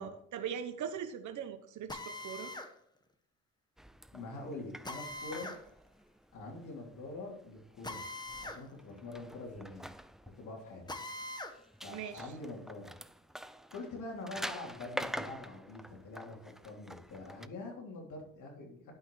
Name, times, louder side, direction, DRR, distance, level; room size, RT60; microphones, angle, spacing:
voice 1, 0.0-2.5 11.9-12.3, right 8 dB, 75° right, 8 dB, 1.1 m, -41 dB
Drill, 1.9-2.7 4.8-5.6 7.8-8.6 9.0-9.1 10.9-11.6, left 2 dB, 15° left, 1.4 m, -42 dB
sound 1, 3.8-17.5, equal, ahead, 0.5 m, -47 dB
voice 2, 4.1-5.5 6.3-8.0 8.4-9.9 10.4-11.1 11.8-12.9 13.7-18.9, left 2 dB, 80° left, -1 dB, 3.5 m, -45 dB
11.5 x 5.8 x 4.8 m, 0.71 s
cardioid pair, 90°, 30 cm